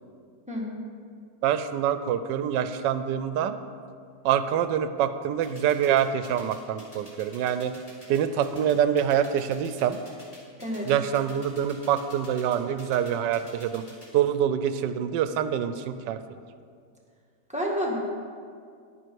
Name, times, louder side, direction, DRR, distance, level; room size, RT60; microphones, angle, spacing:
voice 1, 1.4-3.5 4.2-7.7 8.1-10.0 10.8-13.8 14.1-16.2, right 9 dB, 85° right, 11 dB, 1.3 m, -25 dB
sound 1, 5.4-14.1, equal, 20° left, 2.6 m, -49 dB
voice 2, 10.6-10.9 17.5-17.9, equal, 5° right, -3 dB, 1.6 m, -29 dB
11.0 x 9.7 x 4.6 m, 2.2 s
omnidirectional pair, 1.9 m